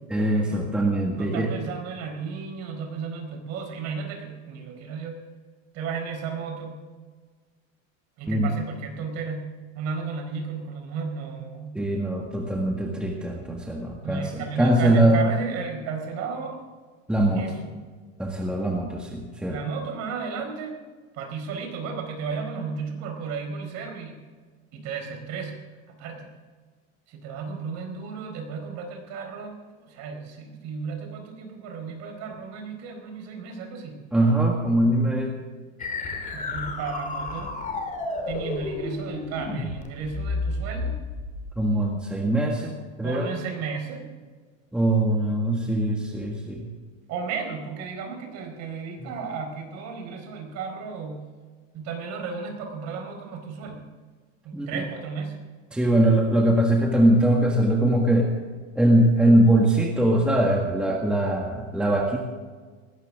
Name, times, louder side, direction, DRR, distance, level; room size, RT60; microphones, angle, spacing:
voice 1, 0.1-1.5 8.3-8.5 11.7-15.2 17.1-17.5 18.2-19.6 34.1-35.3 41.6-42.7 43.0-43.3 44.7-46.7 54.5-54.7 55.7-58.3 58.8-62.2, right 1 dB, ahead, -1 dB, 1.7 m, -22 dB
voice 2, 1.2-5.2 5.7-6.8 8.2-9.4 9.7-11.7 14.0-16.6 17.3-17.7 19.5-20.8 21.1-24.2 24.7-25.6 25.9-26.3 27.1-34.0 36.3-37.6 38.3-40.9 43.0-44.1 47.1-51.2 51.7-53.8 54.4-55.4, right 5 dB, 40° right, 4 dB, 4.6 m, -34 dB
sound 1, 35.8-41.5, left 3 dB, 20° left, 2.9 m, -31 dB
19.5 x 17.0 x 3.7 m, 1.5 s
supercardioid pair, 145°, 39 cm